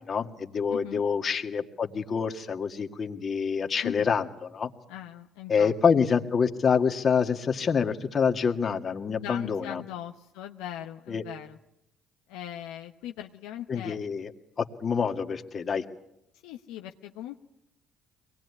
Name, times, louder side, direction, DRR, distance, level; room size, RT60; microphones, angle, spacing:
voice 1, 0.1-4.2 4.5-4.7 5.5-9.8 11.1-11.2 13.7-14.3 14.6-15.8, left 6 dB, 45° left, 6 dB, 1.9 m, -26 dB
voice 2, 0.7-1.0 3.8-4.1 4.9-5.7 9.2-11.6 12.3-14.0 16.4-17.4, left 11 dB, 80° left, 4 dB, 0.9 m, -39 dB
23.5 x 19.5 x 9.7 m, 0.82 s
supercardioid pair, 70°, 0 cm